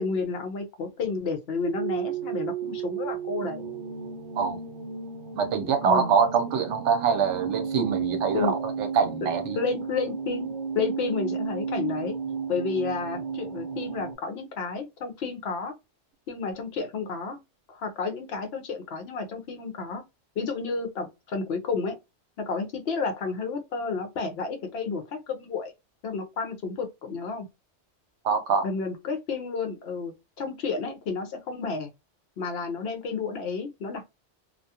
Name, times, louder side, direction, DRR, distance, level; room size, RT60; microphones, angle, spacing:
voice 1, 0.0-3.7 5.8-6.1 8.3-8.6 9.2-12.2 12.5-15.7 16.3-17.4 17.7-20.0 20.4-22.0 22.4-25.7 26.0-27.5 28.6-31.9 32.4-34.1, left 4 dB, 65° left, 0.7 m, -31 dB
sound 1, 1.6-14.1, right 6 dB, 50° right, 0.7 m, -33 dB
voice 2, 5.3-9.6 28.2-28.7, right 6 dB, 75° right, 0.9 m, -24 dB
2.3 x 2.3 x 2.7 m
omnidirectional pair, 1.2 m